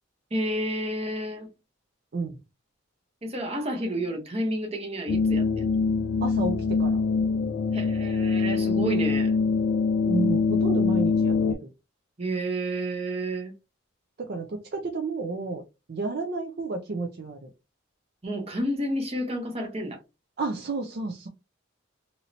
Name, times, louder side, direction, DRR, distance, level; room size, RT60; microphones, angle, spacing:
voice 1, 0.3-1.5 3.2-5.7 7.7-9.3 12.2-13.5 18.2-20.0, right 1 dB, 30° right, 0.8 m, -30 dB
sound 1, 5.1-11.5, left 4 dB, 55° left, 0.3 m, -24 dB
voice 2, 6.2-7.0 10.0-11.6 14.2-15.6 15.9-17.5 20.4-21.3, right 3 dB, 50° right, 0.4 m, -31 dB
3.0 x 2.8 x 2.5 m
head